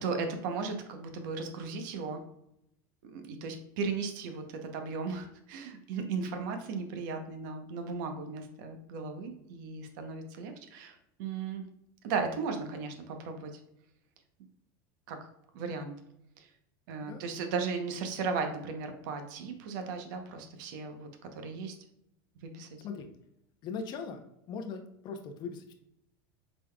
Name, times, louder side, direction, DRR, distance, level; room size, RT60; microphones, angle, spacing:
voice 1, 0.0-2.2 3.0-11.7 12.0-13.6 15.1-15.3 15.5-15.9 16.4-16.5 16.9-21.8 22.4-22.7, right 4 dB, 70° right, 6 dB, 0.8 m, -36 dB
voice 2, 23.6-24.2 24.5-25.7, left 5 dB, 45° left, 4 dB, 0.7 m, -39 dB
5.0 x 3.7 x 2.3 m, 0.78 s
supercardioid pair, 115°, 11 cm